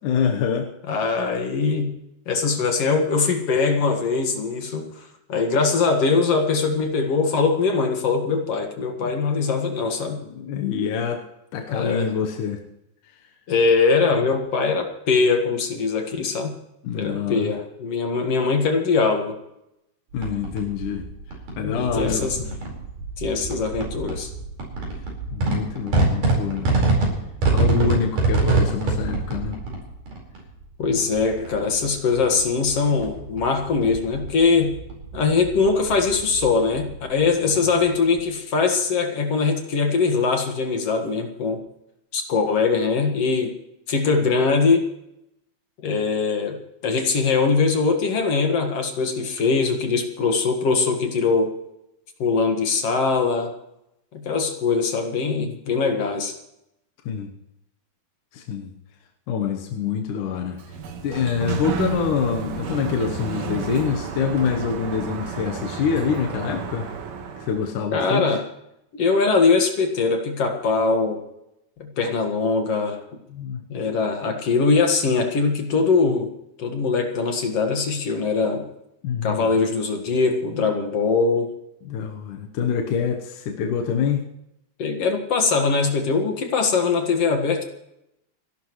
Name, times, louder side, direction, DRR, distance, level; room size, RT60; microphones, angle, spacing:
voice 1, 0.0-0.7 9.0-9.1 10.2-11.2 11.5-12.6 13.1-13.2 16.8-17.5 20.1-22.4 25.3-26.7 27.5-29.6 37.4-37.5 57.1-57.3 58.3-58.7 59.3-60.6 61.0-66.9 67.4-68.4 73.3-73.6 79.0-79.5 81.8-84.3, left 6 dB, 80° left, 3 dB, 2.7 m, -26 dB
voice 2, 0.9-1.9 2.3-10.2 11.7-12.1 13.5-16.5 16.9-19.3 21.6-22.4 23.2-24.3 30.8-34.8 35.1-41.6 42.1-43.5 43.9-44.9 45.8-51.5 52.2-53.5 54.1-56.3 67.9-68.4 69.0-71.2 71.8-73.0 73.7-76.3 76.6-78.7 79.2-81.5 84.8-87.6, left 4 dB, 55° left, 4 dB, 2.6 m, -22 dB
sound 1, 20.1-38.3, right 2 dB, 85° right, 6.3 m, -26 dB
Sliding door, 60.4-67.8, right 6 dB, 65° right, 2.6 m, -31 dB
30.0 x 12.0 x 3.2 m, 0.84 s
omnidirectional pair, 3.6 m